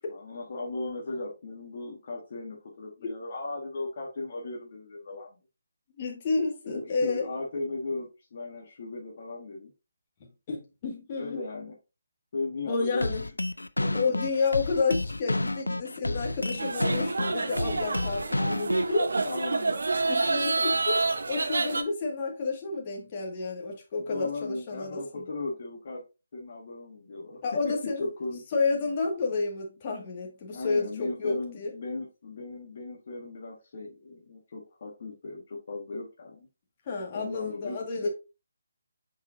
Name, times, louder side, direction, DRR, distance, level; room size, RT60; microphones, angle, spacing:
voice 1, 0.1-5.4 6.6-9.7 11.1-11.8 12.3-13.1 13.8-14.0 15.7-16.4 19.2-19.8 24.0-26.0 26.3-27.7 28.0-28.4 30.5-36.5 37.1-38.1, left 3 dB, 45° left, 1.6 m, -37 dB
voice 2, 6.0-7.3 10.5-11.5 12.7-13.2 13.9-19.1 20.1-25.3 27.4-28.1 28.5-31.7 36.9-38.1, left 4 dB, 30° left, 1.9 m, -30 dB
sound 1, 13.0-19.0, left 2 dB, 80° left, 0.5 m, -30 dB
sound 2, 16.6-21.8, right 3 dB, 60° right, 0.7 m, -28 dB
8.2 x 4.9 x 2.6 m
figure-of-eight pair, 145°, 0 cm